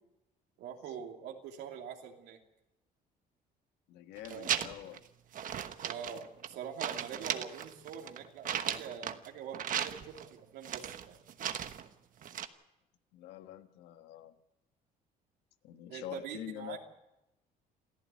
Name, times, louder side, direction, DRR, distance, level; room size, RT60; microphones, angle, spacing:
voice 1, 0.6-2.4 4.3-4.6 5.8-11.2 15.9-16.8, right 8 dB, 85° right, 1 dB, 3.0 m, -44 dB
voice 2, 3.9-5.0 13.1-14.3 15.6-16.8, left 12 dB, 90° left, 9 dB, 1.4 m, -45 dB
sound 1, 4.2-5.0 5.3-6.5 6.8-9.3 9.5-10.3 10.6-11.9 12.2-12.5, right 9 dB, 55° right, 1.2 m, -36 dB
27.5 x 14.0 x 8.4 m, 0.94 s
cardioid pair, 110°, 17 cm